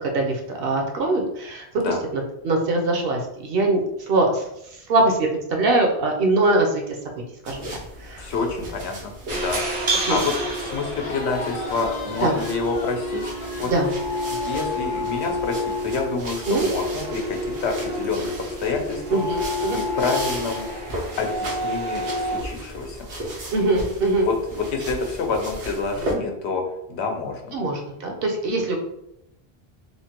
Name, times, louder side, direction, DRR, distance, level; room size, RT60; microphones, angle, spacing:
voice 1, 0.0-1.7 2.1-3.8 4.1-4.4 4.9-6.8 7.4-7.7 8.0-8.3 10.0-10.2 12.2-12.3 13.7-13.9 16.5-16.7 19.1-19.8 23.5-24.3 27.5-28.8, right 2 dB, 65° right, 1 dB, 0.8 m, -22 dB
sound 1, 7.4-26.1, right 1 dB, 90° right, 1.0 m, -36 dB
voice 2, 8.2-13.3 13.6-13.7 14.3-18.3 18.6-19.2 19.7-20.9 21.2-23.0 24.2-26.6 26.9-27.4, left 4 dB, 90° left, 3 dB, 0.9 m, -28 dB
sound 2, 9.3-22.4, equal, 40° right, 0.5 m, -29 dB
Crowd, 10.8-15.7, left 3 dB, 60° left, 0.7 m, -38 dB
3.1 x 2.2 x 2.8 m, 0.81 s
omnidirectional pair, 1.1 m